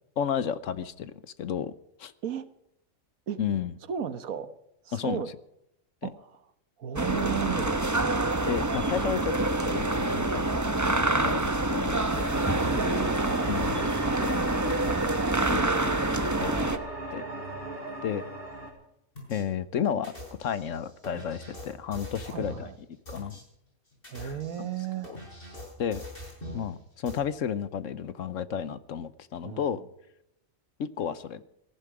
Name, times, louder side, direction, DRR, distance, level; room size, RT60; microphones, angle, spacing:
voice 1, 0.2-1.7 2.0-2.1 3.4-3.7 4.9-5.2 8.5-12.3 12.9-13.0 13.4-13.9 14.2-14.4 15.4-16.1 16.4-16.8 17.1-17.2 18.0-18.2 19.3-20.1 20.4-22.7 23.1-23.4 24.2-24.3 24.6-24.7 25.8-26.0 26.5-29.8 30.8-31.4, left 8 dB, 65° left, 16 dB, 1.2 m, -32 dB
voice 2, 3.9-4.5 4.8-5.3 6.0-6.3 6.8-7.9 12.6-13.6 14.8-15.1 22.2-22.7 24.1-25.1 29.4-29.8, right 9 dB, 85° right, 13 dB, 1.5 m, -35 dB
sound 1, 7.0-16.8, right 2 dB, 15° right, 0.9 m, -26 dB
sound 2, 12.1-18.7, right 2 dB, 45° right, 4.5 m, -38 dB
sound 3, 19.2-19.4 20.0-22.7 23.1-23.4 23.9-26.7 27.1-27.2, left 1 dB, 40° left, 6.7 m, -43 dB
18.0 x 14.5 x 5.0 m, 0.81 s
omnidirectional pair, 1.4 m